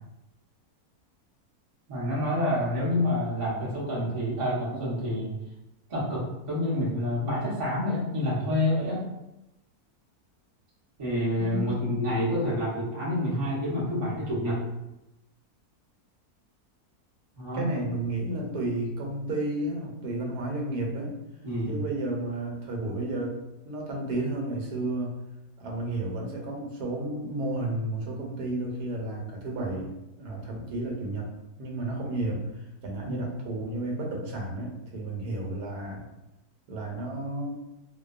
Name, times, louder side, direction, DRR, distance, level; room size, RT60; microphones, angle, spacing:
voice 1, 1.9-5.3 5.9-9.1 11.0-14.6 17.3-17.7 21.4-21.8 33.0-33.3, left 1 dB, 30° right, -7 dB, 0.6 m, -28 dB
voice 2, 11.4-12.1 17.5-21.1 21.7-23.4 23.6-25.1 25.6-29.9 30.2-31.3 31.6-36.1 36.7-37.6, right 1 dB, 90° right, 0 dB, 1.2 m, -32 dB
2.6 x 2.2 x 2.3 m, 0.92 s
omnidirectional pair, 1.6 m